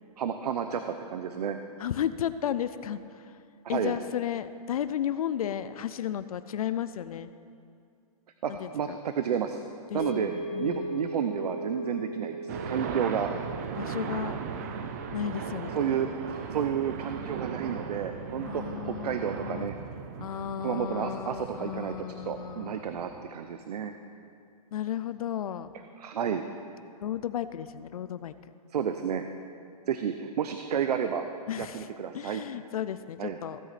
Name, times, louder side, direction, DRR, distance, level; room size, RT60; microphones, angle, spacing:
voice 1, 0.2-1.6 3.6-4.0 8.4-9.6 9.9-10.3 10.6-13.3 15.7-19.7 20.6-23.9 26.0-26.4 28.7-29.2 29.9-31.3 31.6-32.4 33.2-33.4, right 8 dB, 80° right, 7 dB, 0.7 m, -31 dB
voice 2, 1.8-3.3 3.7-7.3 8.5-9.0 9.9-11.0 13.8-14.4 15.1-16.1 18.4-19.2 19.4-19.7 20.2-22.8 24.7-25.8 27.0-28.3 31.5-31.9 32.1-33.6, left 10 dB, 65° left, 13 dB, 0.4 m, -34 dB
sound 1, 10.0-18.3, equal, 20° left, 1.2 m, -40 dB
sound 2, 12.5-23.2, right 6 dB, 25° right, 0.4 m, -38 dB
16.5 x 8.4 x 4.1 m, 2.4 s
hypercardioid pair, 170°, 20 cm